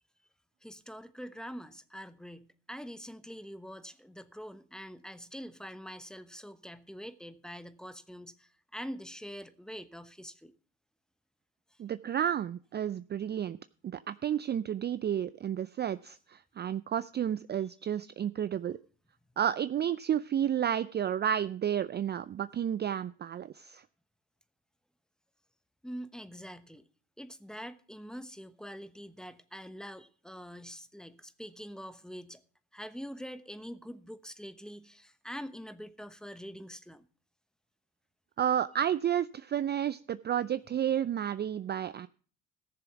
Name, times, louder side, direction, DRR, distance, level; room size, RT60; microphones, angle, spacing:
voice 1, 0.6-10.5 25.8-26.8 27.2-32.4 32.7-37.1, equal, ahead, 1.1 m, -45 dB
voice 2, 11.8-13.6 13.8-18.8 19.4-23.8 38.4-42.1, right 9 dB, 30° right, 0.4 m, -31 dB
15.0 x 6.9 x 5.8 m
hypercardioid pair, 55°, 35 cm